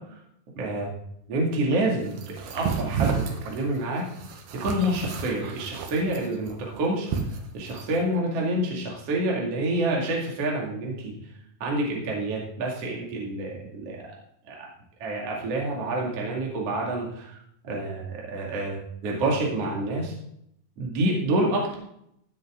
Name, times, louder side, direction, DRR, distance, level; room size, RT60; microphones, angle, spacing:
voice 1, 0.6-0.9 1.3-4.0 4.6-7.1 7.5-11.1 11.6-14.0 14.5-14.7 15.0-18.8 19.0-20.1 20.8-21.8, right 1 dB, 45° right, -2 dB, 2.9 m, -28 dB
sound 1, 2.1-8.0, right 6 dB, 85° right, 3.2 m, -31 dB
15.5 x 8.2 x 3.7 m, 0.74 s
omnidirectional pair, 4.3 m